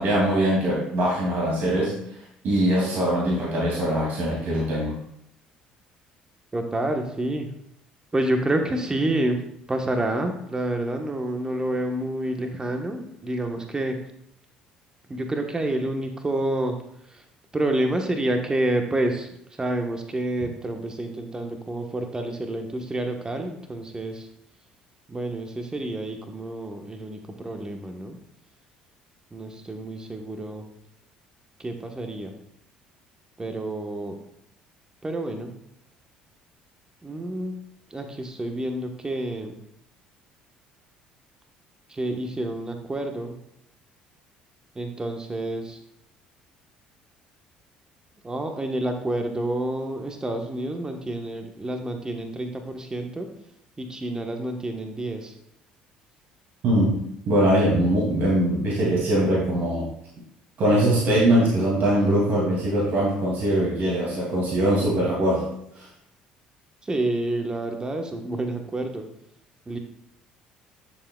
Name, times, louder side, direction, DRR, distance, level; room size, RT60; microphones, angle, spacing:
voice 1, 0.0-1.9 2.4-5.0 56.6-57.0 57.3-59.8 60.6-65.5 65.8-65.9, right 1 dB, 60° right, -4 dB, 2.5 m, -22 dB
voice 2, 6.5-7.5 8.1-9.4 9.7-14.0 15.1-16.7 17.1-17.2 17.5-19.3 19.6-24.3 25.1-28.2 29.3-30.7 31.6-32.3 33.4-34.2 35.0-35.5 37.0-37.6 37.9-39.5 41.9-43.3 44.7-45.8 48.2-53.3 53.8-55.3 66.8-69.0 69.7-69.8, right 1 dB, 20° right, 4 dB, 1.2 m, -28 dB
11.0 x 7.0 x 2.3 m, 0.73 s
hypercardioid pair, 60°, 4 cm